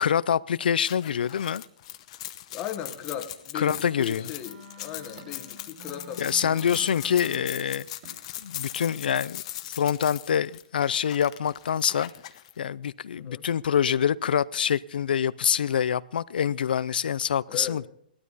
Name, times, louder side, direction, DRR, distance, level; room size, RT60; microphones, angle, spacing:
voice 1, 0.0-1.6 3.5-4.3 6.2-7.9 8.4-12.1 12.6-17.9, left 8 dB, 75° left, 0.5 m, -25 dB
sound 1, 0.8-12.5, left 14 dB, 40° left, 0.9 m, -40 dB
voice 2, 2.5-7.0 13.1-13.5 17.5-17.8, left 10 dB, 20° left, 1.3 m, -38 dB
sound 2, 2.9-4.6 5.2-5.3 5.9-6.0 6.6-6.7 7.3-7.5 8.0-8.2, right 2 dB, 30° right, 4.5 m, -51 dB
sound 3, 3.8-7.6, equal, 75° right, 6.2 m, -48 dB
18.0 x 12.5 x 4.1 m
hypercardioid pair, 160°, 5 cm